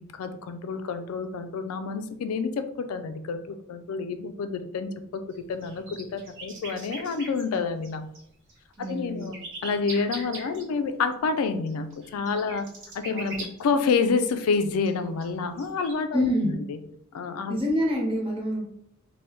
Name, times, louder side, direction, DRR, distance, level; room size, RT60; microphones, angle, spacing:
voice 1, 0.0-5.2 5.5-8.1 8.9-9.4 9.6-12.7 12.9-13.3 13.6-16.8 17.1-17.6, left 4 dB, 80° left, 9 dB, 0.3 m, -28 dB
sound 1, 5.3-8.2 8.5-10.6 11.7-14.3 14.5-14.6 14.8-15.9, right 2 dB, 60° right, 0.9 m, -41 dB
voice 2, 8.8-9.3 13.1-13.4 16.1-16.6 17.5-18.6, equal, 25° right, -3 dB, 0.9 m, -27 dB
3.2 x 2.2 x 3.0 m, 0.72 s
head